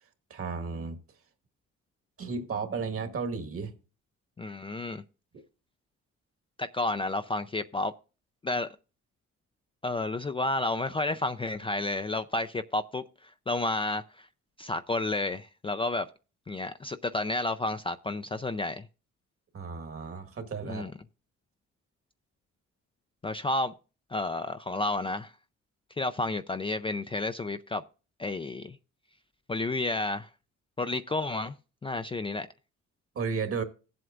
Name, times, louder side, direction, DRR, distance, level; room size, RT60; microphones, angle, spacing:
voice 1, 0.3-1.0 2.2-3.7 19.5-20.8 33.1-33.6, right 5 dB, 50° right, 1.6 m, -33 dB
voice 2, 4.4-5.0 6.6-7.9 8.4-8.8 9.8-14.3 14.6-16.1 16.5-18.9 20.6-20.9 23.2-23.7 24.1-25.3 26.0-27.8 28.2-28.8 29.5-30.3 30.8-31.6 31.8-32.5, left 2 dB, 20° left, 0.4 m, -31 dB
17.5 x 7.8 x 2.5 m
cardioid pair, 90°, 30 cm